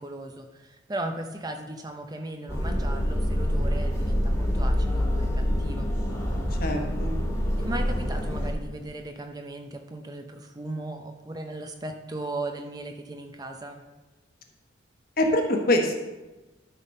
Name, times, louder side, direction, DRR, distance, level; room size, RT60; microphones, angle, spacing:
voice 1, 0.0-5.9 7.6-13.8, right 2 dB, 20° right, 5 dB, 0.5 m, -37 dB
sound 1, 2.5-8.5, equal, 15° left, 1.6 m, -26 dB
voice 2, 6.3-7.2 15.2-15.9, left 1 dB, 50° left, 3 dB, 1.2 m, -25 dB
12.0 x 4.1 x 5.3 m, 1.1 s
head